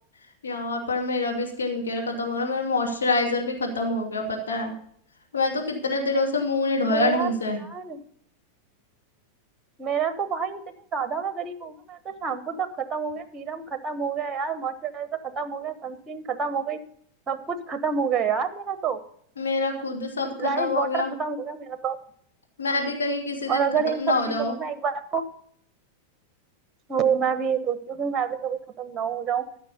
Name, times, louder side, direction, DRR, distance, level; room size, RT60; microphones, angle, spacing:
voice 1, 0.4-4.7 5.3-7.6 19.4-21.1 22.6-24.6, left 3 dB, 70° left, 1 dB, 2.4 m, -26 dB
voice 2, 6.9-7.3 7.6-8.0 9.8-16.8 17.3-19.0 20.4-22.0 23.5-25.2 26.9-29.4, right 6 dB, 20° right, 12 dB, 1.2 m, -28 dB
14.0 x 6.3 x 5.4 m, 0.62 s
figure-of-eight pair, 90°, 0 cm